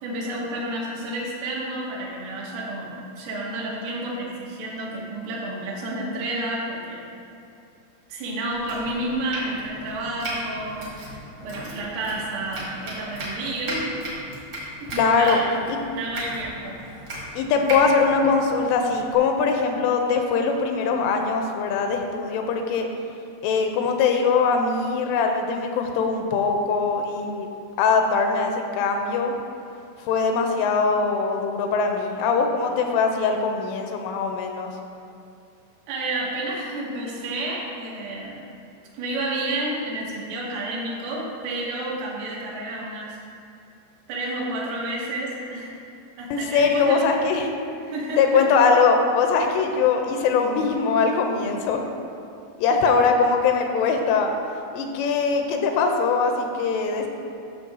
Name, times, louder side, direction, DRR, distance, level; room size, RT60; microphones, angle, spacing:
voice 1, 0.0-2.9 3.2-7.0 8.1-14.0 14.8-15.7 16.0-17.0 35.9-38.4 38.9-43.2 44.1-45.8 46.2-47.1 47.9-48.4 52.9-53.0, right 1 dB, 85° right, -5 dB, 3.9 m, -30 dB
Domestic sounds home sounds, 8.5-19.1, equal, 60° right, 1.2 m, -36 dB
voice 2, 15.0-15.4 15.7-15.8 17.4-22.9 23.4-27.5 27.8-29.3 30.0-34.7 46.3-47.5 48.2-51.8 52.6-54.3 54.7-57.1, left 5 dB, 85° left, 3 dB, 3.0 m, -21 dB
13.5 x 6.4 x 2.7 m, 2.6 s
omnidirectional pair, 5.8 m